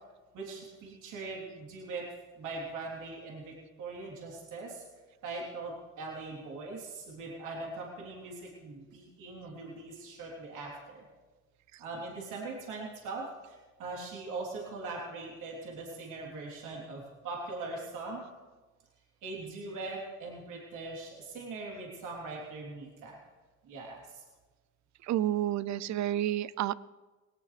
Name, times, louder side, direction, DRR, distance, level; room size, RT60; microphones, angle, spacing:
voice 1, 0.3-2.0 2.4-4.8 5.2-11.1 11.8-18.2 19.2-23.2 23.6-24.2, right 3 dB, 85° right, -3 dB, 3.5 m, -41 dB
voice 2, 25.1-26.7, right 12 dB, 70° right, 19 dB, 0.5 m, -30 dB
19.5 x 17.5 x 3.4 m, 1.3 s
cardioid pair, 90°, 30 cm